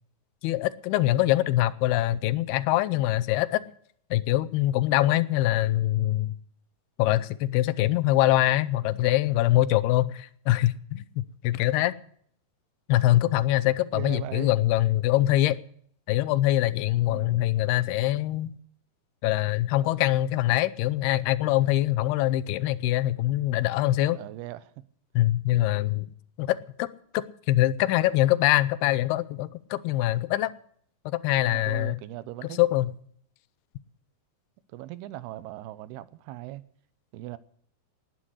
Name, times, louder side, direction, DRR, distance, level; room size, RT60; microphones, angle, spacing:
voice 1, 0.4-3.6 4.1-6.3 7.0-11.9 12.9-15.6 16.1-18.5 19.2-24.2 25.2-26.1 26.4-26.9 27.1-30.5 31.1-32.0 32.6-32.9, left 15 dB, 85° left, 2.7 m, -24 dB
voice 2, 13.9-14.5 17.1-17.5 24.1-24.7 31.4-32.6 34.7-36.6 37.1-37.4, right 15 dB, 85° right, 2.8 m, -39 dB
19.0 x 10.0 x 6.4 m
omnidirectional pair, 4.5 m